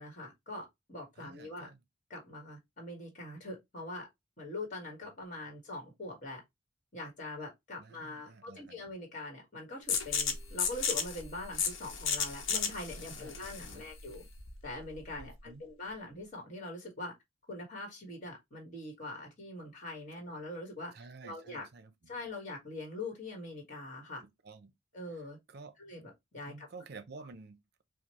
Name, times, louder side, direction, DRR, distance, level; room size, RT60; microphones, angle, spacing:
voice 1, 0.0-1.7 2.1-4.1 4.4-6.4 6.9-14.2 14.6-17.1 17.5-20.9 21.2-21.7 22.1-24.2 24.9-25.4 25.8-26.7 27.2-27.3, left 2 dB, 40° left, 1.3 m, -43 dB
voice 2, 1.2-1.8 7.8-8.8 13.0-13.9 15.2-15.7 20.9-21.9 24.2-24.7 25.5-25.7 26.5-27.6, right 4 dB, 55° right, 0.6 m, -51 dB
sound 1, 9.9-15.4, left 6 dB, 80° left, 0.8 m, -34 dB
5.0 x 2.1 x 2.9 m
head